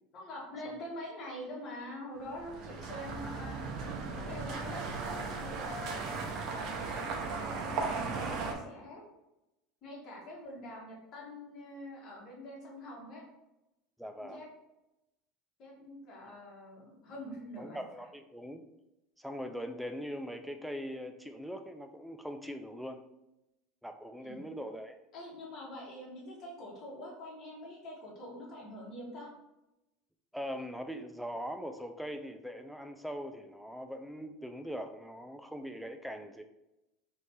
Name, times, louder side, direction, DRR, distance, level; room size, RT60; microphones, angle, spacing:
voice 1, 0.1-3.6 4.1-6.4 6.7-9.0 9.8-13.2 14.2-14.5 15.6-17.8 24.2-24.4 25.1-29.3, left 1 dB, 40° left, -3 dB, 1.5 m, -45 dB
sound 1, 2.3-8.5, right 4 dB, 45° right, 0.7 m, -37 dB
voice 2, 14.0-14.4 17.6-18.7 19.2-23.0 23.8-25.0 30.3-36.4, equal, ahead, 6 dB, 0.3 m, -41 dB
3.2 x 3.2 x 4.2 m, 0.93 s
supercardioid pair, 155°, 0 cm